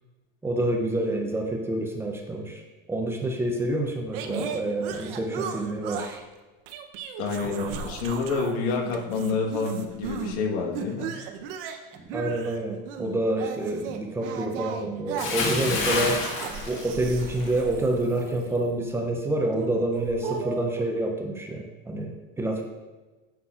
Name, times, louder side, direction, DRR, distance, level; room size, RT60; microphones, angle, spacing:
voice 1, 0.4-2.6 2.9-6.2 7.4-7.8 11.9-16.2 16.7-22.6, right 1 dB, 10° right, 2 dB, 0.5 m, -28 dB
sound 1, 4.1-6.2 6.7-8.6 8.8-10.4 10.7-18.7 19.5-20.8, right 7 dB, 70° right, 0.8 m, -36 dB
voice 2, 7.2-11.1, left 4 dB, 80° left, 0 dB, 1.4 m, -28 dB
Bathtub (filling or washing) / Splash splatter, 15.2-17.6 17.9-18.2, left 3 dB, 45° left, 1.7 m, -28 dB
9.5 x 5.9 x 2.4 m, 1.2 s
cardioid pair, 155°, 29 cm